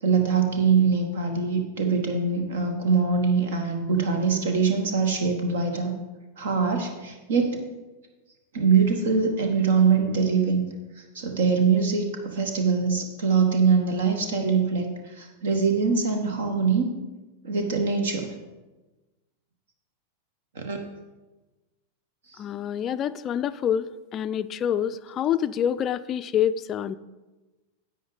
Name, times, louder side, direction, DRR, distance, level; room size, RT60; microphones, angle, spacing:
voice 1, 0.0-5.9 6.4-7.6 8.5-10.6 11.0-16.9 17.4-18.3 20.5-20.8 22.3-22.4, right 5 dB, 60° right, 5 dB, 1.0 m, -23 dB
voice 2, 22.4-27.0, left 9 dB, 30° left, 14 dB, 0.3 m, -27 dB
10.5 x 8.0 x 3.9 m, 1.1 s
figure-of-eight pair, 90°, 0 cm